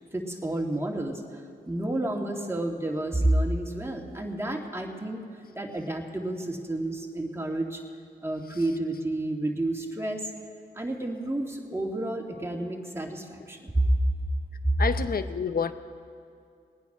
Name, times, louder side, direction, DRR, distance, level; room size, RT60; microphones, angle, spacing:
voice 1, 0.1-1.4 1.7-5.2 5.5-7.8 8.2-10.3 10.7-14.0 14.6-14.7, right 1 dB, 15° right, 0 dB, 2.4 m, -29 dB
voice 2, 14.8-15.7, left 6 dB, 60° left, 11 dB, 0.8 m, -28 dB
20.5 x 9.2 x 6.1 m, 2.3 s
supercardioid pair, 40°, 18 cm